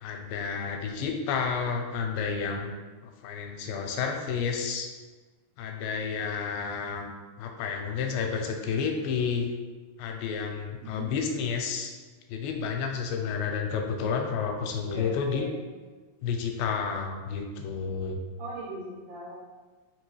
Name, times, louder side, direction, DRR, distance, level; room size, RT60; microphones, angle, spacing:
voice 1, 0.0-2.7 3.0-4.9 5.6-9.5 10.0-11.9 12.3-15.5 16.2-18.2, left 6 dB, 85° left, 3 dB, 2.3 m, -31 dB
voice 2, 10.8-11.6 14.9-15.6 18.4-19.4, right 1 dB, 70° right, -7 dB, 1.6 m, -40 dB
5.1 x 3.0 x 3.1 m, 1.3 s
omnidirectional pair, 4.1 m